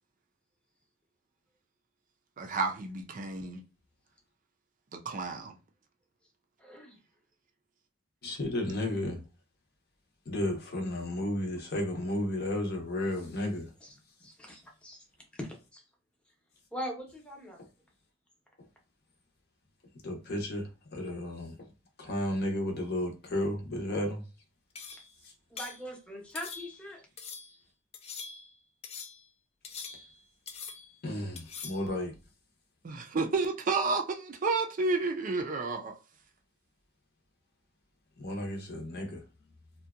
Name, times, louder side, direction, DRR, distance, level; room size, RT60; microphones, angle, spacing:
voice 1, 2.4-3.6 4.9-5.6 32.8-36.0, right 3 dB, 40° right, 0.4 m, -31 dB
voice 2, 6.6-7.0 13.8-15.0 15.4-15.8 16.7-17.6 24.9-25.0 25.5-27.0, equal, 5° left, 0.7 m, -42 dB
voice 3, 8.2-9.2 10.3-13.7 20.0-21.6 22.0-24.2 25.2-25.3 31.0-32.1 38.2-39.2, left 1 dB, 55° left, 0.7 m, -33 dB
sound 1, 24.8-25.1 25.6-25.8 26.4-26.9 27.2-27.6 27.9-28.5 28.8-29.3 29.6-30.2 30.5-31.0 31.4-31.9, left 5 dB, 30° left, 0.3 m, -44 dB
2.7 x 2.1 x 2.3 m
head